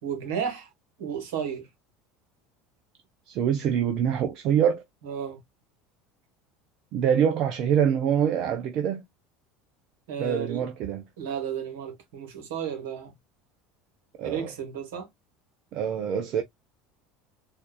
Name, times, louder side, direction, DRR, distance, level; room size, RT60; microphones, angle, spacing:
voice 1, 0.0-0.7 1.0-1.7 5.0-5.4 10.1-10.7 11.2-13.1 14.2-15.1, right 7 dB, 75° right, 1.4 m, -33 dB
voice 2, 3.3-4.8 6.9-9.0 10.2-11.0 14.2-14.5 15.7-16.4, right 8 dB, 55° right, 0.6 m, -25 dB
4.3 x 2.6 x 2.3 m
hypercardioid pair, 75°, 0 cm